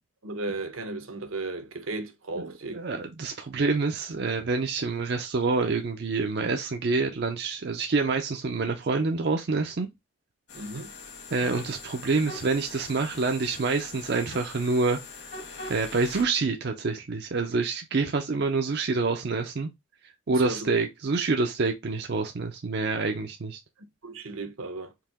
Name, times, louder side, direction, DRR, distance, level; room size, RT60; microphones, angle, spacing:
voice 1, 0.2-2.8 10.5-10.9 20.3-20.7 24.0-24.9, right 2 dB, 80° right, 0.9 m, -35 dB
voice 2, 2.4-9.9 11.3-15.0 15.7-19.7 20.3-23.6, right 3 dB, 50° right, 0.5 m, -27 dB
sound 1, 10.5-16.2, left 4 dB, 55° left, 1.5 m, -42 dB
4.7 x 2.9 x 3.5 m
head